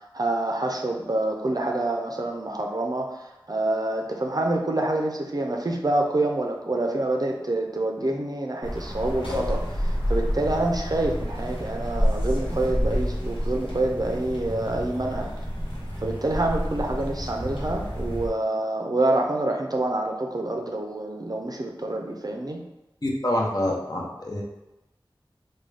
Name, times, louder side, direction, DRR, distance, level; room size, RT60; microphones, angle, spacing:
voice 1, 0.1-15.3 16.0-22.6, right 2 dB, 50° right, 2 dB, 0.5 m, -27 dB
sound 1, 8.6-18.3, equal, 85° left, 1.0 m, -29 dB
voice 2, 23.0-24.4, left 1 dB, 45° left, -1 dB, 0.7 m, -26 dB
3.7 x 2.2 x 3.2 m, 0.98 s
wide cardioid pair, 45°, 9 cm